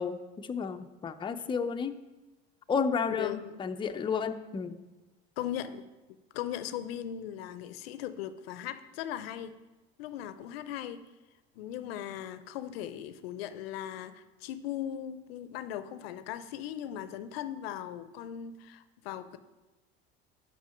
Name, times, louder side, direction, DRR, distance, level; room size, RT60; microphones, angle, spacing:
voice 1, 0.0-2.0 2.7-4.8, left 6 dB, 15° left, 9 dB, 0.4 m, -32 dB
voice 2, 3.2-3.5 5.4-5.8 6.3-9.5 10.0-11.0 11.6-19.4, left 10 dB, 80° left, 13 dB, 0.5 m, -38 dB
6.0 x 5.6 x 5.7 m, 1.1 s
hypercardioid pair, 85°, 30 cm